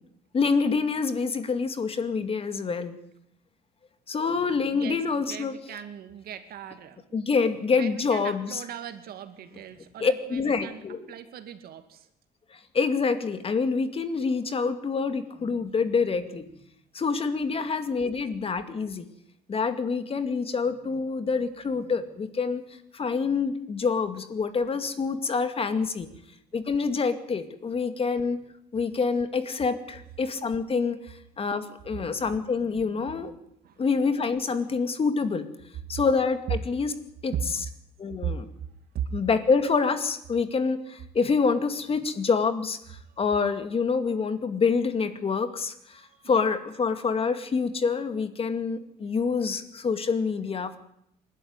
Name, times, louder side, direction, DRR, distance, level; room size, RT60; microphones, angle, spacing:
voice 1, 0.3-3.0 4.1-5.6 7.1-8.6 10.0-11.0 12.5-16.5 16.9-19.1 19.5-22.6 22.9-26.1 26.5-28.4 28.7-33.4 33.8-35.5 35.9-36.9 37.2-37.7 38.0-38.5 39.1-50.8, left 5 dB, 35° left, 10 dB, 2.3 m, -26 dB
voice 2, 4.7-7.2 7.7-12.1 17.5-17.7 26.0-26.1 33.6-33.8 37.3-37.4 38.2-38.4 38.9-39.1 43.0-43.2 45.9-46.4, right 9 dB, 65° right, 9 dB, 2.4 m, -38 dB
27.5 x 12.5 x 9.7 m, 0.73 s
cardioid pair, 110°, 17 cm